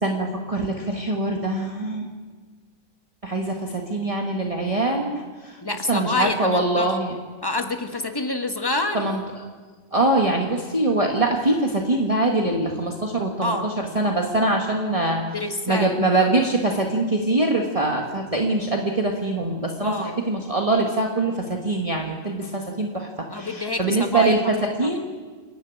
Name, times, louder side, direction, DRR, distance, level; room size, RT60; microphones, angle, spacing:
voice 1, 0.0-2.1 3.2-5.6 5.9-7.1 8.9-9.4 9.9-15.2 15.7-25.0, right 2 dB, 25° right, 0 dB, 1.8 m, -23 dB
voice 2, 5.6-7.0 7.4-9.0 13.4-13.7 15.3-16.2 19.8-20.2 23.3-24.9, left 2 dB, 15° left, 5 dB, 1.5 m, -28 dB
28.5 x 10.5 x 9.2 m, 1.5 s
omnidirectional pair, 1.4 m